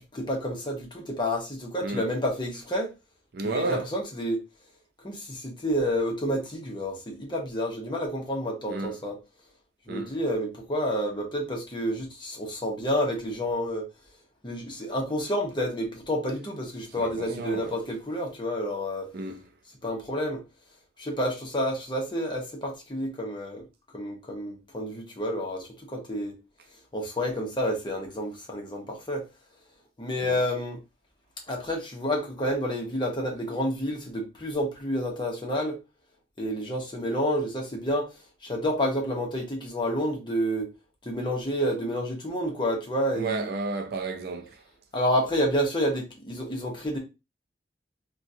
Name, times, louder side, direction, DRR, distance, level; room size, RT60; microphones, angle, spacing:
voice 1, 0.0-2.9 3.4-4.4 5.0-9.2 9.9-13.9 14.4-19.1 19.8-20.4 21.0-23.6 23.9-26.3 26.9-29.2 30.0-30.8 31.5-35.8 36.4-38.1 38.4-40.7 41.0-43.5 44.9-47.0, equal, 25° left, 0.9 m, -29 dB
voice 2, 3.3-3.9 8.7-8.9 9.9-10.1 17.0-17.7 19.1-19.4 30.2-30.4 43.1-44.6, right 3 dB, 60° right, 0.5 m, -32 dB
3.6 x 2.3 x 2.7 m
head